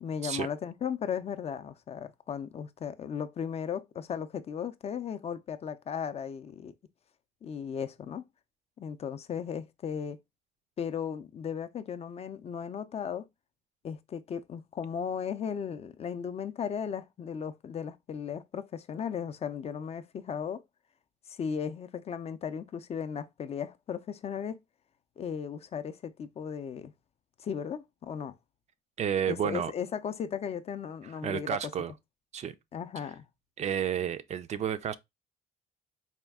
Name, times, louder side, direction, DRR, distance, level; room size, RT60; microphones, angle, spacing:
voice 1, 0.0-6.7 7.4-8.3 8.8-10.2 10.8-13.2 13.8-20.6 21.3-24.6 25.2-26.9 27.4-28.3 29.3-31.6 32.7-33.3, left 7 dB, 40° left, 0.4 m, -36 dB
voice 2, 29.0-29.7 31.2-31.9 32.3-32.5 33.6-34.9, right 9 dB, 40° right, 0.4 m, -31 dB
4.2 x 2.3 x 3.5 m
cardioid pair, 110°, 17 cm